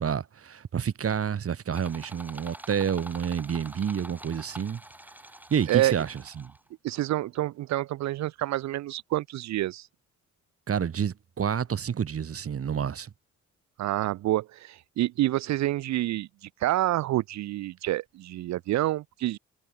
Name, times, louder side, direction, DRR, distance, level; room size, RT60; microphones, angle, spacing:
voice 1, 0.0-4.8 5.5-6.5 10.7-13.1, right 8 dB, 50° right, 3.2 m, -29 dB
sound 1, 1.7-6.7, right 1 dB, 5° right, 6.9 m, -46 dB
voice 2, 6.8-9.9 13.8-16.3 16.6-19.4, right 15 dB, 65° right, 0.5 m, -27 dB
cardioid pair, 90°, 30 cm